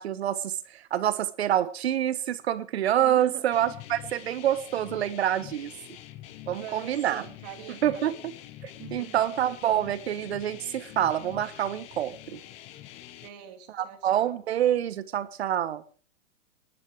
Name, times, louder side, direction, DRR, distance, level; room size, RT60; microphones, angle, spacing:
voice 1, 0.0-5.7 6.5-7.2 7.8-8.3 8.6-12.4 13.8-15.8, right 11 dB, 55° right, 1.3 m, -27 dB
voice 2, 3.0-3.5 6.5-8.1 8.8-9.3 13.2-14.4, right 12 dB, 35° right, 2.6 m, -44 dB
sound 1, 3.5-13.3, left 13 dB, 15° left, 0.9 m, -46 dB
20.5 x 11.5 x 4.8 m
hypercardioid pair, 170°, 38 cm